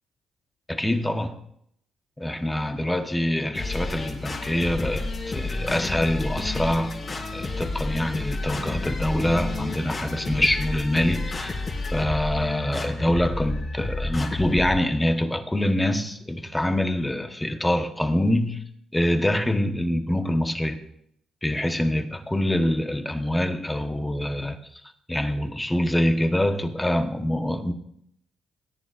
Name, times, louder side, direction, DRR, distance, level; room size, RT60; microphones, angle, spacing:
voice 1, 0.7-1.4 2.2-6.9 7.3-18.6 18.9-20.8 21.4-24.8 25.1-27.7, left 1 dB, 10° left, 6 dB, 1.2 m, -25 dB
sound 1, 3.5-14.8, left 2 dB, 40° left, 3.8 m, -30 dB
18.5 x 9.8 x 2.6 m, 0.73 s
cardioid pair, 90°, 0 cm